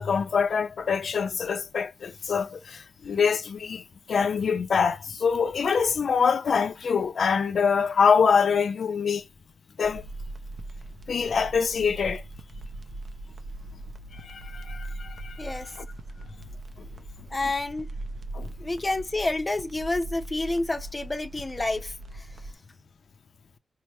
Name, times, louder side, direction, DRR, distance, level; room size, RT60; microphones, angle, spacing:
voice 1, 0.0-3.8 4.1-9.2 9.8-10.0 11.1-12.2 14.2-15.9 18.3-18.5, left 6 dB, 70° left, 0.5 m, -25 dB
sound 1, 9.8-22.5, right 2 dB, 55° right, 0.5 m, -40 dB
voice 2, 17.3-17.9 18.6-22.3, left 2 dB, 20° left, 0.5 m, -29 dB
4.5 x 2.0 x 2.7 m
wide cardioid pair, 175°, 0 cm